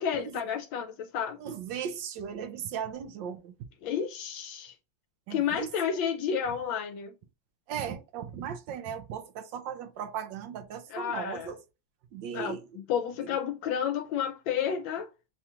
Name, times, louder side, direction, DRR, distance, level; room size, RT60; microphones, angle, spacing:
voice 1, 0.0-1.4 3.8-4.7 5.3-7.1 10.9-11.5 12.3-15.1, left 8 dB, 80° left, 1.3 m, -31 dB
voice 2, 1.4-3.6 5.3-6.0 7.7-11.6 12.1-12.6, right 8 dB, 75° right, 1.3 m, -37 dB
7.1 x 2.4 x 2.9 m
omnidirectional pair, 2.1 m